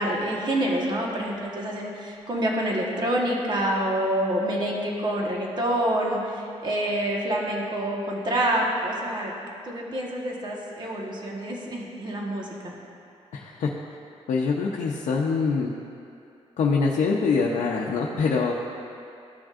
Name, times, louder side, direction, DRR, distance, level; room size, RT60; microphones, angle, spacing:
voice 1, 0.0-6.2 6.6-9.3 9.6-12.7, right 1 dB, 40° right, -2 dB, 1.3 m, -27 dB
voice 2, 13.3-13.7 14.3-15.7 16.6-18.5, left 4 dB, 85° left, -2 dB, 0.6 m, -24 dB
14.0 x 6.1 x 2.5 m, 2.6 s
wide cardioid pair, 130°, 12 cm